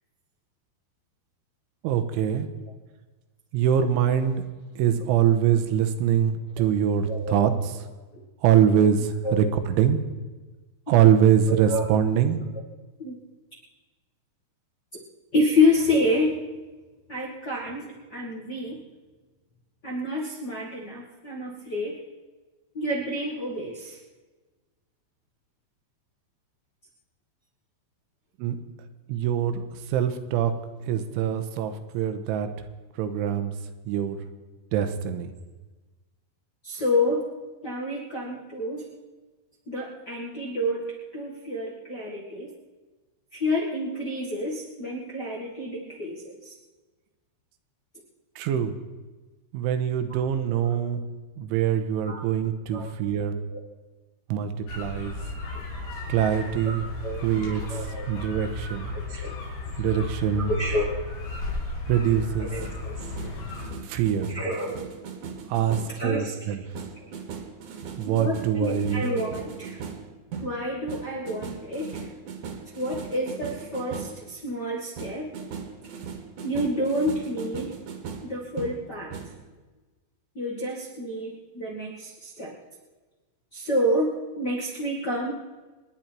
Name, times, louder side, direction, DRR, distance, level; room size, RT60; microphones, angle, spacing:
voice 1, 1.8-2.5 3.5-4.5 4.8-7.5 8.4-10.0 10.9-12.4 28.4-28.6 29.1-30.5 30.9-32.5 33.0-33.5 33.9-34.2 34.7-35.3 48.4-48.8 49.5-51.0 51.4-53.3 54.3-55.2 56.1-56.8 57.2-57.8 58.1-58.9 59.8-60.5 61.9-62.5 63.8-64.3 65.5-66.6 68.0-69.0, right 9 dB, 85° right, 9 dB, 3.4 m, -23 dB
voice 2, 11.5-11.8 13.0-13.2 15.3-16.4 17.1-18.8 19.8-22.0 22.7-24.0 36.6-37.2 37.6-38.8 39.7-42.5 43.3-46.5 50.3-50.5 50.8-50.9 52.1-52.2 52.7-52.9 53.5-53.6 56.6-57.2 57.7-58.1 58.9-59.3 60.5-61.0 62.4-63.0 64.3-64.8 66.0-66.4 67.0-67.1 68.2-69.8 70.4-72.1 72.7-75.3 76.4-77.8 78.2-79.1 80.3-82.5 83.5-85.3, left 1 dB, 60° left, -4 dB, 1.0 m, -28 dB
sound 1, 54.7-63.7, left 2 dB, 85° left, 5.7 m, -34 dB
sound 2, 62.6-66.0 66.7-74.3 75.0-79.3, right 6 dB, 60° right, 2.5 m, -39 dB
27.5 x 10.5 x 4.5 m, 1.3 s
omnidirectional pair, 5.5 m